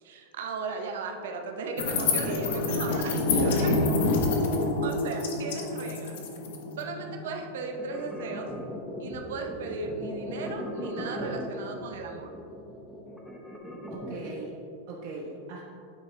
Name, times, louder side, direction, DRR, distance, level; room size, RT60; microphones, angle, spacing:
voice 1, 0.0-3.7 4.8-6.2 6.8-8.5 9.0-12.3, right 4 dB, 75° right, 4 dB, 0.7 m, -36 dB
sound 1, 1.8-8.3, left 3 dB, 70° left, 0.9 m, -27 dB
voice 2, 2.1-2.5 3.4-3.8 13.9-15.6, right 3 dB, 60° right, -4 dB, 1.2 m, -39 dB
sound 2, 7.8-14.5, equal, 5° left, 0.6 m, -38 dB
8.6 x 3.7 x 3.3 m, 2.4 s
supercardioid pair, 160°, 0 cm